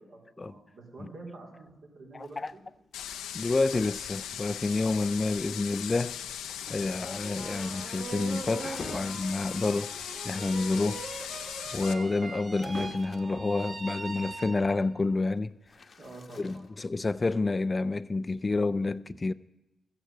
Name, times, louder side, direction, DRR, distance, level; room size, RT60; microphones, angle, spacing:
voice 1, 0.0-2.6 16.0-16.9, right 2 dB, 70° right, 4.0 m, -47 dB
voice 2, 2.1-2.5 3.3-6.2 6.7-9.9 10.2-11.0 11.7-15.5 16.4-19.3, left 3 dB, 35° left, 0.4 m, -29 dB
sound 1, 2.2-5.3 5.7-13.4 15.2-16.9, left 4 dB, 50° left, 1.0 m, -48 dB
sound 2, 2.9-11.9, left 9 dB, 85° left, 0.7 m, -39 dB
sound 3, 6.8-15.0, right 3 dB, 45° right, 1.3 m, -41 dB
13.5 x 8.9 x 8.0 m
supercardioid pair, 50°, 0 cm